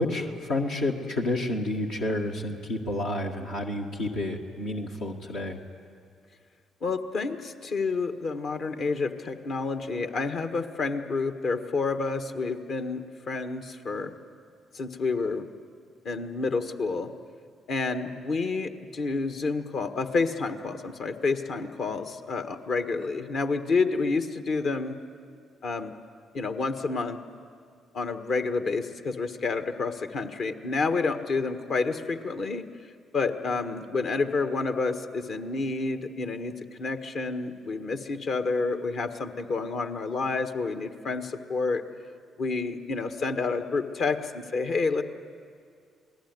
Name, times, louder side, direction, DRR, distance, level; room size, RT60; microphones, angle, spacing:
voice 1, 0.0-5.6, left 1 dB, 75° left, -1 dB, 1.9 m, -30 dB
voice 2, 6.8-14.1 14.7-15.5 16.0-17.1 17.7-25.0 25.6-25.9 26.3-27.2 27.9-32.6 33.1-41.8 42.4-45.0, left 4 dB, 60° left, 7 dB, 1.6 m, -29 dB
27.5 x 19.0 x 9.6 m, 2.3 s
hypercardioid pair, 45°, 0 cm